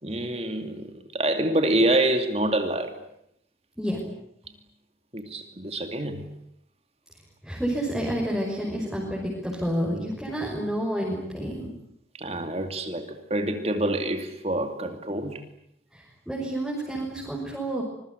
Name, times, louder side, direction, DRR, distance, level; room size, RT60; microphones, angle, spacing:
voice 1, 0.0-3.0 5.1-6.3 12.2-15.4, right 1 dB, 35° right, 7 dB, 2.6 m, -26 dB
voice 2, 7.4-11.7 15.9-17.8, right 1 dB, ahead, -4 dB, 6.0 m, -29 dB
26.0 x 23.0 x 9.6 m, 0.75 s
head